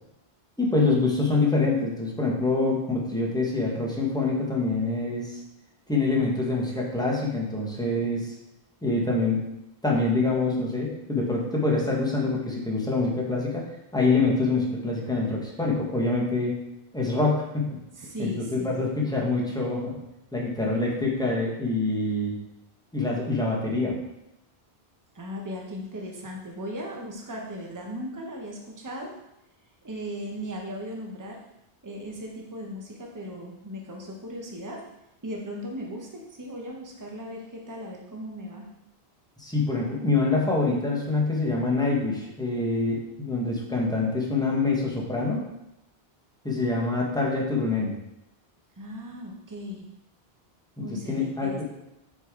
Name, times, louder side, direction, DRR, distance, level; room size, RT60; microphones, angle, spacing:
voice 1, 0.6-5.4 5.9-8.3 8.8-9.4 9.8-13.7 13.9-16.6 16.9-17.8 18.2-20.0 20.3-22.4 22.9-24.0 39.4-45.4 46.4-48.0 50.8-51.6, left 3 dB, 5° left, -4 dB, 1.3 m, -25 dB
voice 2, 17.9-18.8 25.1-29.1 29.8-31.4 31.8-34.8 35.2-38.7 48.8-49.9 50.8-51.6, equal, 20° right, 0 dB, 0.9 m, -37 dB
6.5 x 4.7 x 3.8 m, 0.88 s
omnidirectional pair, 1.0 m